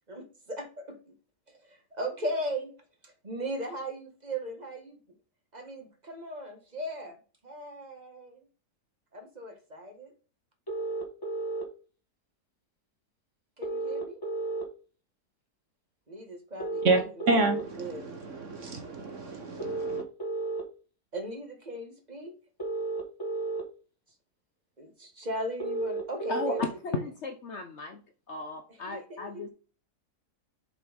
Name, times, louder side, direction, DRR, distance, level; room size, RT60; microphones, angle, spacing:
voice 1, 0.1-1.1 1.5-2.7 3.0-5.0 5.5-7.2 7.4-8.4 9.1-10.1 13.6-14.2 16.1-17.1 17.3-17.5 17.8-18.0 21.1-22.3 24.8-26.6 26.9-27.0 28.7-29.5, right 1 dB, 25° right, 1.6 m, -38 dB
sound 1, 10.7-11.6 13.6-14.6 16.6-17.6 19.6-20.6 22.6-23.6 25.6-26.6, right 3 dB, 15° left, 1.4 m, -32 dB
voice 2, 17.3-20.0, right 3 dB, 55° right, 1.3 m, -28 dB
voice 3, 26.3-28.0 28.3-29.5, left 4 dB, 55° left, 0.9 m, -35 dB
7.1 x 5.5 x 3.5 m
omnidirectional pair, 1.7 m